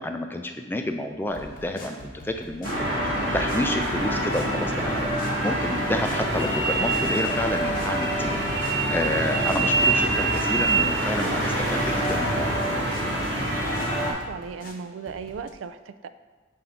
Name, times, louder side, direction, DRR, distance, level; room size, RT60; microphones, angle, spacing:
voice 1, 0.0-12.7, left 1 dB, 10° left, 5 dB, 0.3 m, -30 dB
sound 1, 1.3-15.5, left 1 dB, 45° left, 0.8 m, -44 dB
sound 2, 2.6-14.1, right 2 dB, 65° right, 1.8 m, -25 dB
voice 2, 13.9-16.1, right 5 dB, 90° right, 11 dB, 0.4 m, -37 dB
7.3 x 2.7 x 5.8 m, 1.3 s
head